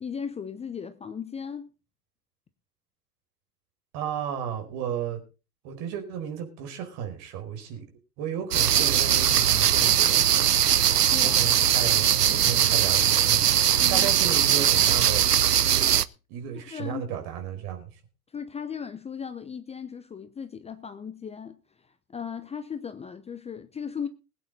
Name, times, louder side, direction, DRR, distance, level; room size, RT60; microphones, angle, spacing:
voice 1, 0.0-1.7 11.1-11.4 13.8-14.1 16.5-17.1 18.3-24.1, left 7 dB, 15° left, 0.8 m, -37 dB
voice 2, 3.9-5.2 5.6-7.8 8.2-10.2 11.2-15.2 16.3-17.9, right 8 dB, 45° right, 4.6 m, -33 dB
sound 1, 8.5-16.0, right 10 dB, 80° right, 0.7 m, -21 dB
21.0 x 8.7 x 4.0 m
figure-of-eight pair, 85°, 46 cm